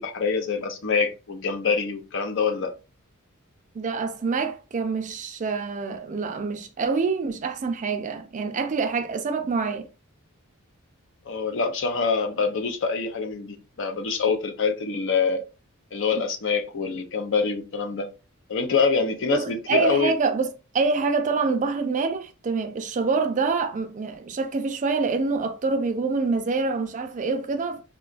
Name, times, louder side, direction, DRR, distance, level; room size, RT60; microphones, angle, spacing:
voice 1, 0.0-2.7 11.3-15.4 15.9-18.1 18.5-20.1, left 5 dB, 60° left, 0.6 m, -25 dB
voice 2, 3.7-9.9 19.3-20.5 20.7-27.8, right 4 dB, 35° right, 0.4 m, -26 dB
3.7 x 2.3 x 2.4 m
head